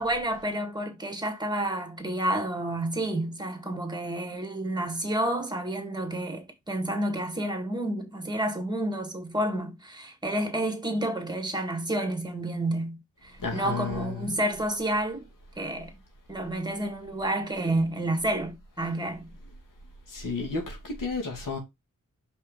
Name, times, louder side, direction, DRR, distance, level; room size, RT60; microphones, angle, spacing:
voice 1, 0.0-15.3 15.6-15.9 16.3-19.3, right 1 dB, 15° right, 1.9 m, -30 dB
voice 2, 13.4-14.3 20.1-21.6, left 4 dB, 80° left, 2.5 m, -32 dB
5.4 x 5.1 x 3.7 m
wide cardioid pair, 110°, 31 cm